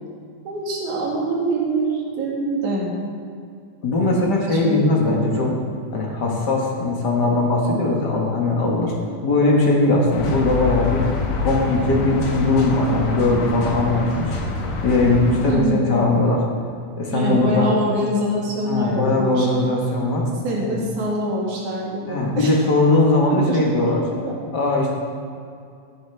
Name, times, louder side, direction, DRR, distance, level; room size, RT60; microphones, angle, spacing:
voice 1, 0.5-2.9 4.0-5.0 15.5-15.9 17.1-19.5 20.4-22.6 23.3-23.6 24.2-24.4, right 1 dB, 85° right, -4 dB, 3.6 m, -24 dB
voice 2, 3.8-5.5 5.9-8.9 9.2-11.0 11.4-14.3 14.8-16.4 17.0-17.7 18.6-20.2 20.6-20.8 22.1-24.1 24.5-24.9, left 2 dB, 45° left, -1 dB, 1.6 m, -20 dB
sound 1, 10.1-15.6, left 3 dB, 75° left, 2.5 m, -26 dB
15.5 x 9.2 x 3.4 m, 2.3 s
omnidirectional pair, 3.4 m